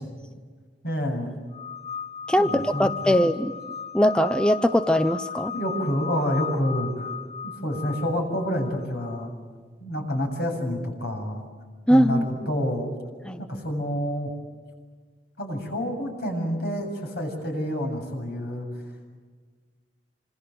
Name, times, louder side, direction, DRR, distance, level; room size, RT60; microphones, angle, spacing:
voice 1, 0.8-1.4 2.4-3.2 5.5-7.1 7.4-9.3 9.8-11.5 11.9-13.0 13.4-14.3 15.4-18.7, equal, 65° left, 4 dB, 7.7 m, -28 dB
sound 1, 1.5-9.3, left 6 dB, 40° left, 1.4 m, -36 dB
voice 2, 2.3-3.5 3.9-5.5 11.9-12.2 13.2-13.4, equal, 5° left, 10 dB, 0.7 m, -21 dB
27.5 x 26.5 x 7.9 m, 1.5 s
head